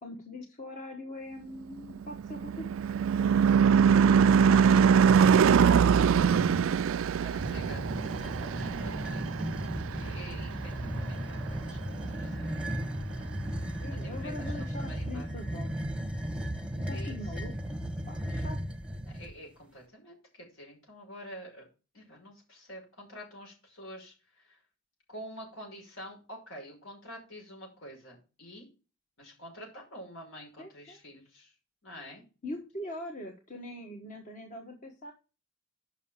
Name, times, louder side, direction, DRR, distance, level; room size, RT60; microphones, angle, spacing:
voice 1, 0.0-2.7 3.2-3.3 7.1-7.2 13.8-15.8 16.9-17.5 18.1-18.6 30.6-31.0 32.4-35.1, left 1 dB, 40° left, 2 dB, 1.4 m, -43 dB
Car passing by / Truck / Engine, 1.9-10.6, right 7 dB, 75° right, 0.4 m, -23 dB
sound 1, 6.1-6.7 7.3-19.3, equal, 5° right, 0.9 m, -35 dB
voice 2, 6.8-12.6 13.1-14.5 14.8-15.3 16.7-17.2 19.1-21.7 21.9-24.6 25.1-28.7 29.2-31.5 31.8-32.2, equal, 75° left, -1 dB, 5.8 m, -48 dB
7.3 x 5.9 x 7.3 m, 0.32 s
head